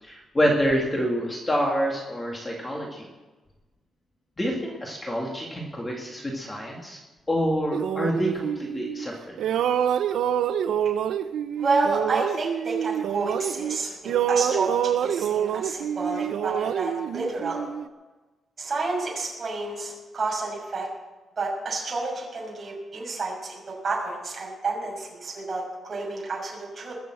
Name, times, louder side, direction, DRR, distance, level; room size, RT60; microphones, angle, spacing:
voice 1, 0.0-3.1 4.4-7.0 7.3-9.3, equal, 15° left, -1 dB, 2.0 m, -27 dB
sound 1, 7.7-9.1 9.4-13.8 14.1-17.9, right 9 dB, 85° right, 0.6 m, -26 dB
voice 2, 11.6-17.6 18.6-20.9 21.4-26.9, right 3 dB, 35° right, -3 dB, 6.2 m, -30 dB
21.0 x 7.2 x 7.6 m, 1.2 s
wide cardioid pair, 155°, 0 cm